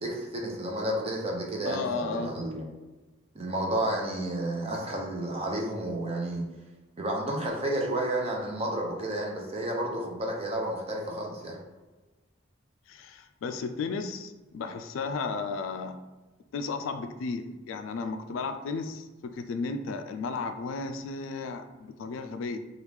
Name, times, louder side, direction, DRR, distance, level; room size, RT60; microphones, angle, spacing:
voice 1, 0.0-2.7 3.3-6.4 7.0-11.6, right 1 dB, 30° right, -1 dB, 0.6 m, -31 dB
voice 2, 1.7-2.4 12.9-16.0 16.5-22.6, left 4 dB, 70° left, 8 dB, 0.3 m, -34 dB
3.1 x 2.4 x 3.4 m, 1.2 s
head